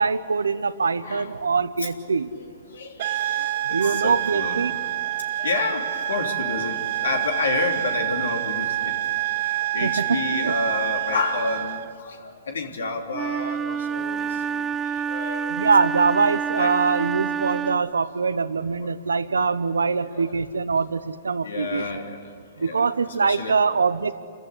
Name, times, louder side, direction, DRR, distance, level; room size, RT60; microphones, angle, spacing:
voice 1, 0.0-2.3 3.7-4.7 9.8-9.9 10.4-10.5 15.5-22.0 22.6-24.1, right 5 dB, 85° right, 15 dB, 0.9 m, -23 dB
voice 2, 1.0-1.3 1.8-2.0 2.3-4.7 5.4-9.1 9.4-15.5 16.5-16.9 18.8-18.9 20.0-20.4 21.4-22.3 22.6-23.6, left 4 dB, 80° left, 2 dB, 3.3 m, -30 dB
sound 1, 3.0-11.9, right 14 dB, 60° right, 0.8 m, -27 dB
Wind instrument woodwind instrument, 13.1-18.0, right 7 dB, 20° right, 0.6 m, -28 dB
28.5 x 15.0 x 9.9 m, 2.2 s
hypercardioid pair, 120°, 0 cm